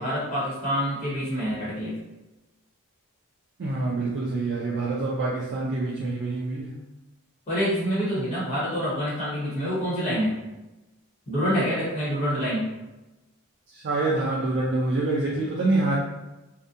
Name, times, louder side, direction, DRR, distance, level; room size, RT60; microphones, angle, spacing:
voice 1, 0.0-1.9 7.5-10.3 11.3-12.7, equal, 30° left, -9 dB, 1.0 m, -26 dB
voice 2, 3.6-6.8 13.7-15.9, right 2 dB, 50° right, -5 dB, 0.4 m, -26 dB
2.6 x 2.1 x 2.4 m, 1.0 s
head